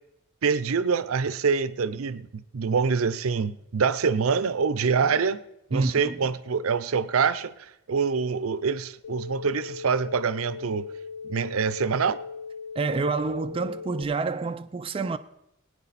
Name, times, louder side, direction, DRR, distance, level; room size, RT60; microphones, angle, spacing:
voice 1, 0.4-5.4 5.7-10.9 11.3-12.2, right 5 dB, 75° right, 0.5 m, -25 dB
voice 2, 5.7-6.2 12.8-15.2, right 3 dB, 25° right, 0.4 m, -28 dB
sound 1, 9.0-14.0, left 5 dB, 85° left, 6.3 m, -39 dB
20.0 x 9.6 x 4.1 m
head